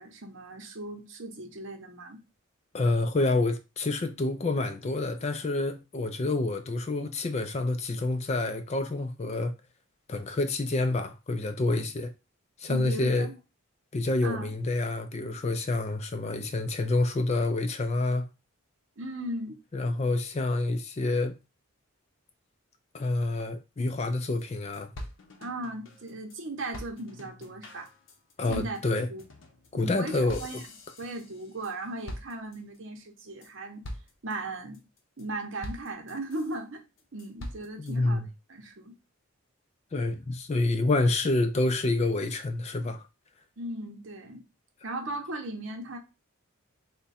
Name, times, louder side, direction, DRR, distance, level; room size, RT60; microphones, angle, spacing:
voice 1, 0.0-2.2 12.7-13.3 14.2-14.5 19.0-19.6 25.4-27.9 28.5-28.8 29.1-29.2 29.7-30.6 31.0-33.9 34.2-34.8 35.2-36.8 37.1-38.2 38.5-38.9 43.6-44.4 44.8-46.0, right 1 dB, 60° right, 0.8 m, -37 dB
voice 2, 2.7-9.5 10.1-12.1 12.6-13.3 13.9-18.3 19.7-21.3 22.9-24.9 28.4-29.1 29.7-30.4 37.8-38.3 39.9-43.0, left 2 dB, 30° left, 0.3 m, -28 dB
sound 1, 24.1-24.2 24.4-24.5 24.7-26.4 26.7-31.8 32.1-32.8 33.2-33.5 33.8-34.3 34.7-35.2 35.6-36.6 37.0-37.9, left 1 dB, 60° left, 0.7 m, -44 dB
3.5 x 2.2 x 4.1 m
head